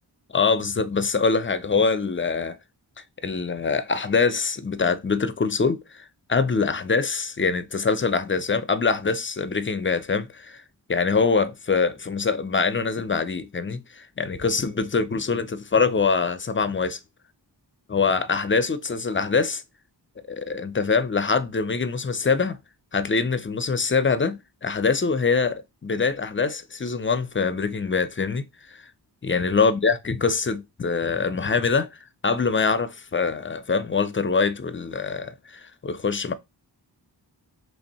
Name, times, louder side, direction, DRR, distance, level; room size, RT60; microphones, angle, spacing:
voice 1, 0.3-2.6 3.2-10.6 10.9-17.0 17.9-19.6 20.3-22.6 22.9-28.9 29.2-36.3, left 4 dB, 30° left, 0.4 m, -24 dB
3.2 x 2.6 x 4.1 m
wide cardioid pair, 80°, 43 cm